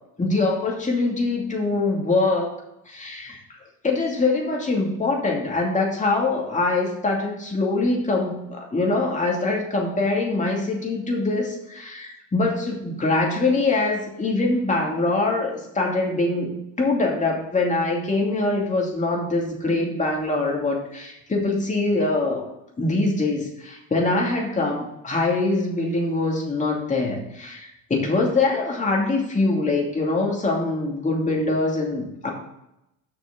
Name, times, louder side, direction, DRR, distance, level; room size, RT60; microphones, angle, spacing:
voice 1, 0.2-2.5 2.9-3.6 3.8-22.4 22.8-32.3, left 2 dB, 20° left, -1 dB, 2.5 m, -23 dB
6.4 x 6.3 x 6.1 m, 0.85 s
supercardioid pair, 110°, 39 cm